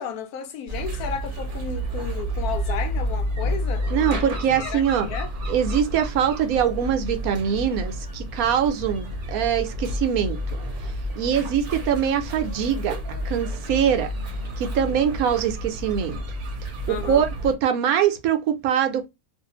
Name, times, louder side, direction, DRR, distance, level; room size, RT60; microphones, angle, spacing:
voice 1, 0.0-3.9 4.6-5.3 16.9-17.3, left 7 dB, 90° left, 1.1 m, -33 dB
sound 1, 0.7-17.5, equal, 45° right, 0.8 m, -30 dB
voice 2, 3.9-5.1 5.5-10.4 11.2-13.0 13.2-14.1 14.6-16.2 17.0-19.1, right 8 dB, 80° right, 1.0 m, -23 dB
2.6 x 2.4 x 2.8 m
omnidirectional pair, 1.5 m